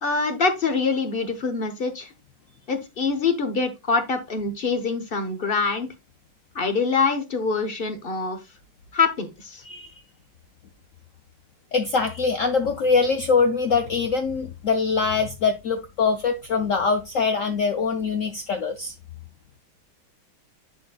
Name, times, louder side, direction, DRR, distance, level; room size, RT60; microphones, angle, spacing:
voice 1, 0.0-2.1 2.7-5.9 6.5-8.4 8.9-9.6, left 4 dB, 45° left, 0.7 m, -24 dB
voice 2, 11.7-18.9, left 4 dB, 85° left, 0.7 m, -23 dB
11.0 x 4.3 x 2.3 m
omnidirectional pair, 2.2 m